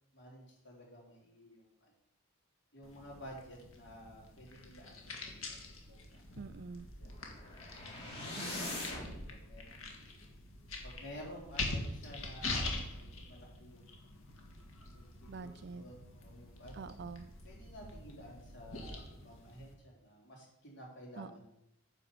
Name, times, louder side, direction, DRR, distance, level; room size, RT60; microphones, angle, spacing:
voice 1, 0.1-1.9 2.7-5.6 5.9-6.4 7.0-7.4 8.2-9.9 10.8-13.8 14.9-17.0 17.4-21.4, equal, 55° left, -2 dB, 3.5 m, -52 dB
sound 1, 2.8-19.7, left 2 dB, 80° left, 1.8 m, -44 dB
voice 2, 6.4-6.9 8.4-8.9 15.3-15.9 16.7-17.3 21.2-21.4, right 4 dB, 50° right, 14 dB, 0.4 m, -46 dB
sound 2, 7.0-9.2, left 2 dB, 30° left, 2.4 m, -42 dB
9.7 x 5.0 x 6.9 m, 0.82 s
head